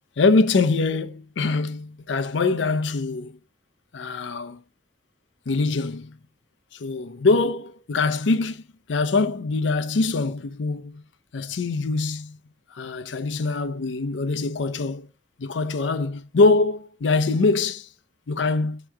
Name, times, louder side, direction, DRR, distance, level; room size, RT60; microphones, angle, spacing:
voice 1, 0.2-3.4 3.9-4.6 5.5-6.2 6.7-8.6 8.9-11.0 11.3-12.4 12.7-15.1 15.4-17.9 18.3-18.8, left 3 dB, 85° left, 0.5 m, -23 dB
3.6 x 3.0 x 4.4 m
head